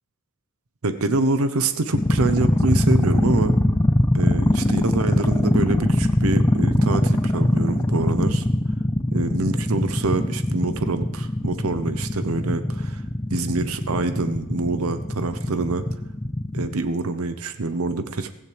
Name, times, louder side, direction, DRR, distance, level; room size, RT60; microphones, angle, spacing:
voice 1, 0.8-3.6 4.1-8.4 9.1-13.0 13.3-15.8 16.5-18.3, right 3 dB, 70° right, 10 dB, 0.8 m, -25 dB
sound 1, 1.9-16.8, left 1 dB, 15° left, 0.5 m, -21 dB
16.0 x 15.0 x 3.4 m, 0.93 s
head